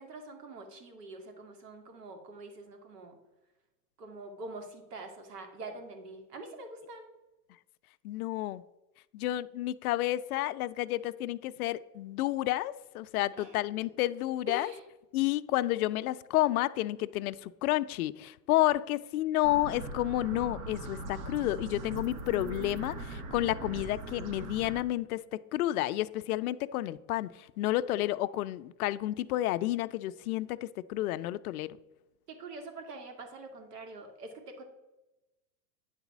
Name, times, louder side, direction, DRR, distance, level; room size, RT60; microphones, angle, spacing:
voice 1, 0.0-3.2 4.0-7.1 13.3-13.8 14.5-14.8 32.3-34.6, right 2 dB, 85° right, 5 dB, 2.2 m, -45 dB
voice 2, 8.0-8.6 9.1-14.7 15.1-25.2 25.5-27.3 27.6-31.7, left 15 dB, 65° left, 13 dB, 0.5 m, -30 dB
sound 1, 19.4-24.8, right 3 dB, 60° right, 1.5 m, -40 dB
9.5 x 4.1 x 7.1 m, 1.0 s
supercardioid pair, 155°, 47 cm